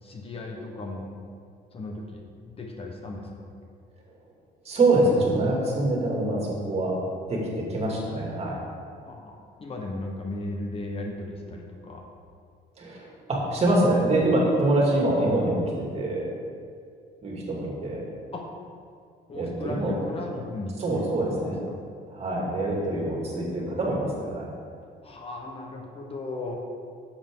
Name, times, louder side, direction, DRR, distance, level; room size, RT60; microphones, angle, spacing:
voice 1, 0.0-1.1 1.7-3.5 9.0-12.1 18.3-18.4 19.3-21.8 25.0-26.6, left 2 dB, 35° left, 1 dB, 1.1 m, -36 dB
voice 2, 4.6-7.0 7.3-8.6 12.8-16.3 17.2-18.0 19.3-19.9 20.8-21.6 22.1-24.5, right 2 dB, 40° right, -3 dB, 2.5 m, -25 dB
10.0 x 7.4 x 3.8 m, 2.2 s
cardioid pair, 110°, 17 cm